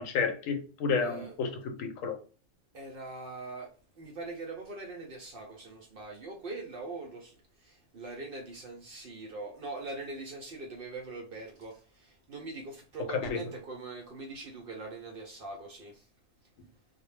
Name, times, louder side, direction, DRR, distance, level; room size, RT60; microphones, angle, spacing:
voice 1, 0.0-2.2 13.3-13.4, left 5 dB, 80° left, 1.0 m, -31 dB
voice 2, 1.0-1.4 2.7-16.1, right 3 dB, 55° right, 0.6 m, -42 dB
2.2 x 2.0 x 3.1 m
omnidirectional pair, 1.3 m